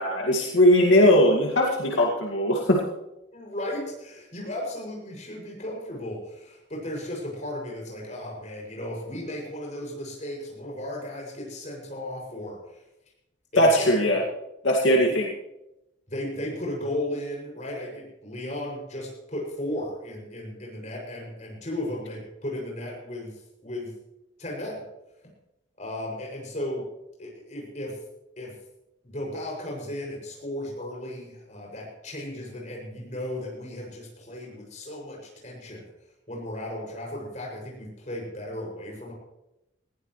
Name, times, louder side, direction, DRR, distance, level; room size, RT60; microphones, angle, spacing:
voice 1, 0.0-2.8 13.6-14.2 14.6-15.3, left 1 dB, 80° left, -1 dB, 2.3 m, -19 dB
voice 2, 3.3-12.8 13.5-14.2 14.9-15.2 16.1-23.9 24.4-24.8 25.8-26.9 27.2-28.0 28.4-28.6 29.0-35.8 36.3-39.1, left 1 dB, 40° left, -2 dB, 7.0 m, -35 dB
20.0 x 16.0 x 3.3 m, 0.89 s
head